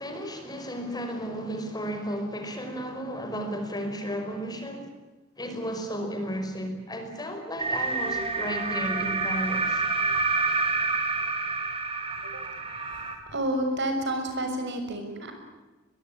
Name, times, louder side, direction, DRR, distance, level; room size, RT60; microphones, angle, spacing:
voice 1, 0.0-4.9 5.4-9.8, equal, 20° left, 5 dB, 5.2 m, -33 dB
sound 1, 7.6-13.1, right 4 dB, 30° right, 4.4 m, -28 dB
voice 2, 13.3-15.3, right 1 dB, 60° right, 5 dB, 6.4 m, -29 dB
24.5 x 22.0 x 8.6 m, 1.2 s
head